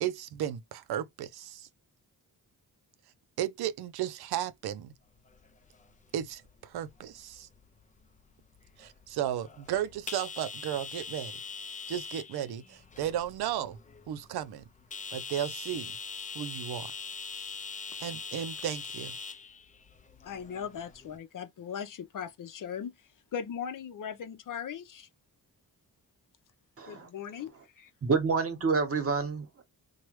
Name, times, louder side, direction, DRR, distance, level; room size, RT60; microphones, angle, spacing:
voice 1, 0.0-1.7 3.4-4.9 6.1-7.5 8.8-11.3 11.9-13.8 14.1-14.6 15.1-16.0 16.3-16.9 18.0-19.1, right 11 dB, 90° right, 0.5 m, -34 dB
sound 1, 5.0-21.2, left 5 dB, 20° left, 0.5 m, -43 dB
voice 2, 20.2-22.9 23.3-25.1 26.9-27.5 27.8-27.9, left 8 dB, 55° left, 0.7 m, -38 dB
voice 3, 26.8-27.1 28.0-29.6, right 4 dB, 40° right, 1.1 m, -28 dB
3.1 x 2.3 x 3.0 m
cardioid pair, 105°, 37 cm